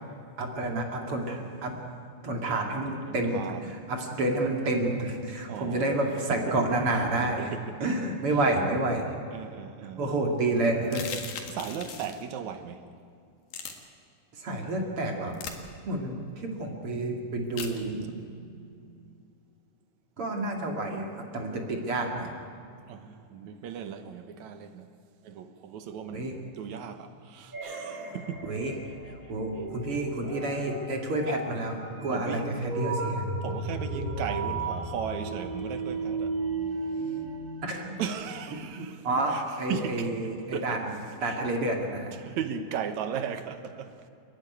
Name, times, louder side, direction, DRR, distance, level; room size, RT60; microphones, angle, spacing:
voice 1, 0.4-1.8 2.2-7.5 7.8-9.0 10.0-11.1 14.4-15.3 15.9-18.1 20.2-22.3 26.1-26.3 28.4-28.7 29.3-33.3 37.6-37.9 38.8-40.9 41.2-42.2, right 2 dB, 45° right, 2.9 m, -29 dB
voice 2, 3.1-3.7 5.5-6.0 6.3-6.5 7.4-7.8 9.3-10.1 11.5-12.9 18.0-19.2 22.9-24.9 25.2-28.5 28.8-29.0 29.2-29.3 32.1-32.5 33.4-36.4 36.8-37.3 38.0-41.4 42.1-44.1, right 8 dB, 65° right, 2.2 m, -37 dB
sound 1, 10.9-12.2 13.5-13.7 15.3-15.6 17.6-17.8, left 7 dB, 85° left, 3.5 m, -38 dB
sound 2, 27.5-38.5, right 3 dB, 25° right, 6.8 m, -35 dB
29.5 x 11.0 x 9.6 m
omnidirectional pair, 3.9 m